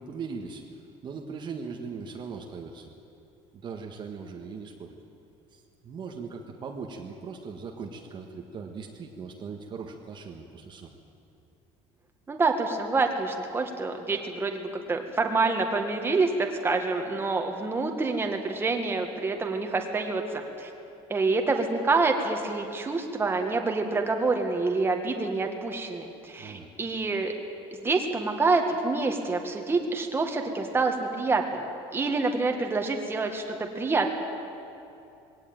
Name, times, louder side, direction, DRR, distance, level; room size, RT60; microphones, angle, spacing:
voice 1, 0.0-2.9 3.5-4.9 5.5-10.9 26.3-26.7, right 5 dB, 35° right, 2 dB, 1.6 m, -39 dB
voice 2, 12.3-20.7 21.1-27.3 27.8-31.7 31.9-34.1, right 3 dB, 15° right, 3 dB, 1.9 m, -27 dB
20.5 x 17.5 x 9.1 m, 2.7 s
cardioid pair, 140°, 13 cm